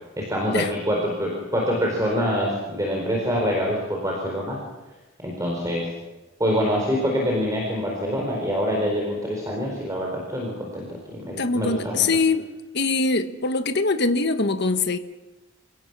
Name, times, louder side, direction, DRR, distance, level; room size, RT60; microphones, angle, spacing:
voice 1, 0.2-4.6 5.2-5.9 6.4-12.0, equal, 15° right, 4.4 m, -25 dB
voice 2, 11.4-12.4 12.7-15.0, left 3 dB, 55° left, 1.4 m, -23 dB
28.0 x 17.5 x 6.1 m
head